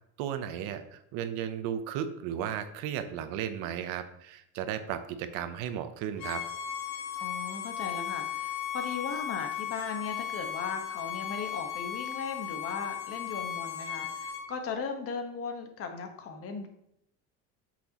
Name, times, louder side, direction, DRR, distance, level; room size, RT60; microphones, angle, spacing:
voice 1, 0.2-6.4, right 9 dB, 80° right, 10 dB, 0.9 m, -35 dB
Bowed string instrument, 6.2-14.4, left 9 dB, 85° left, 1.9 m, -36 dB
voice 2, 7.2-16.7, left 5 dB, 45° left, 5 dB, 1.4 m, -37 dB
8.3 x 6.1 x 3.0 m, 0.78 s
cardioid pair, 135°, 33 cm